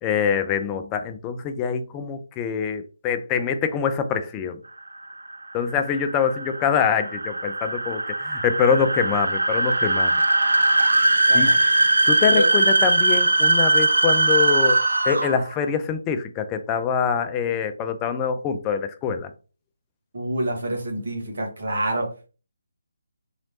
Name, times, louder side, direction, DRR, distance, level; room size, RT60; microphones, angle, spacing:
voice 1, 0.0-4.6 5.5-10.2 11.3-11.6 12.1-14.8 15.1-19.3, left 7 dB, 15° left, 0.4 m, -24 dB
sound 1, 4.9-15.5, right 2 dB, 75° right, 0.4 m, -20 dB
voice 2, 11.3-11.6 12.3-12.5 20.1-22.3, right 1 dB, 55° right, 1.6 m, -27 dB
3.9 x 3.0 x 2.8 m
figure-of-eight pair, 145°, 0 cm